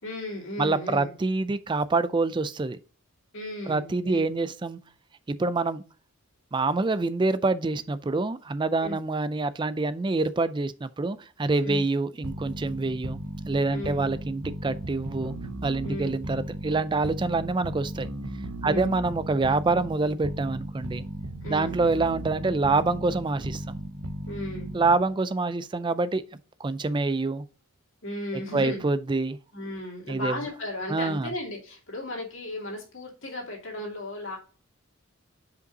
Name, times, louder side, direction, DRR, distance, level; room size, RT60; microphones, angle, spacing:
voice 1, 0.0-1.1 3.3-4.3 8.8-9.0 11.6-11.8 13.7-14.0 15.8-16.1 18.6-18.9 21.4-21.8 24.3-24.7 28.0-28.9 29.5-34.4, left 1 dB, 60° left, 2.5 m, -35 dB
voice 2, 0.6-2.8 3.7-4.8 5.3-5.8 6.5-13.2 13.5-15.3 15.6-18.1 18.6-21.1 21.5-23.8 24.7-26.2 26.6-27.4 28.5-29.4 30.1-30.4 30.9-31.3, right 3 dB, 20° right, 0.3 m, -26 dB
sound 1, 12.2-25.1, right 1 dB, 75° right, 0.9 m, -36 dB
5.4 x 5.2 x 3.9 m
head